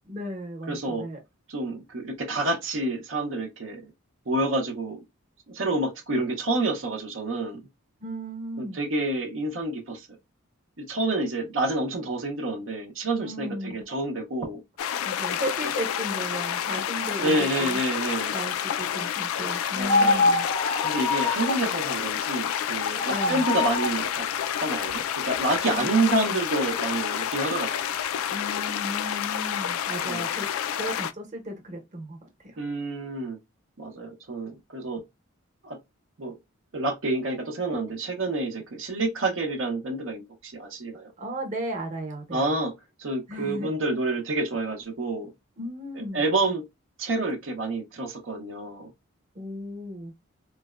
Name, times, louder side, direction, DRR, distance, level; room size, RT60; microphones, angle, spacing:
voice 1, 0.1-1.2 8.0-8.8 13.2-13.8 15.0-17.8 18.3-20.5 23.1-23.4 25.6-26.4 28.3-30.5 30.8-32.2 32.4-32.6 41.2-42.5 43.3-43.7 45.6-46.2 49.3-50.1, right 1 dB, 35° right, 0.9 m, -35 dB
voice 2, 0.7-1.1 1.5-3.9 4.3-5.0 5.5-7.6 8.6-10.1 10.8-14.6 17.2-18.3 19.8-20.3 20.8-24.3 24.6-28.0 30.0-30.2 32.6-33.4 33.8-35.0 35.6-35.8 36.2-36.3 36.7-41.1 42.3-42.7 43.0-45.3 45.9-46.6 47.0-48.9, right 2 dB, 65° right, 0.7 m, -28 dB
sound 1, 14.8-31.1, left 9 dB, 85° left, 0.3 m, -29 dB
sound 2, 19.8-21.7 23.0-24.0, left 3 dB, 25° left, 0.5 m, -24 dB
3.9 x 2.1 x 2.3 m
head